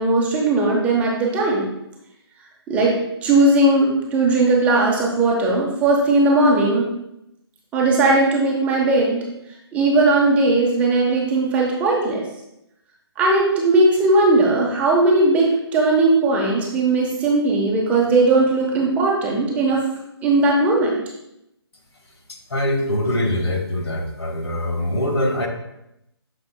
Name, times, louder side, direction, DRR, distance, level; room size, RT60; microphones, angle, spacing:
voice 1, 0.0-1.7 2.7-6.9 7.7-9.3 9.7-12.2 13.2-19.8 20.2-21.0, right 2 dB, 10° right, -3 dB, 0.9 m, -18 dB
voice 2, 22.5-25.5, left 1 dB, 70° left, 3 dB, 1.7 m, -23 dB
9.5 x 6.0 x 2.2 m, 0.84 s
figure-of-eight pair, 150°, 14 cm